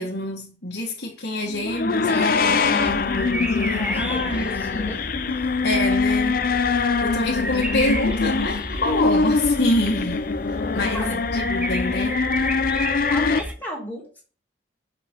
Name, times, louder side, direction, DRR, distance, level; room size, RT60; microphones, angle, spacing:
voice 1, 0.0-4.9 5.6-6.4 6.8-12.3, left 1 dB, 65° left, 1.5 m, -27 dB
voice 2, 1.4-3.1 3.7-5.8 10.7-11.2 13.1-14.2, equal, 10° left, 2.3 m, -35 dB
sound 1, 1.6-13.4, left 4 dB, 50° left, 0.4 m, -23 dB
sound 2, 2.8-13.5, right 1 dB, 5° right, 0.5 m, -32 dB
6.0 x 5.0 x 3.7 m
head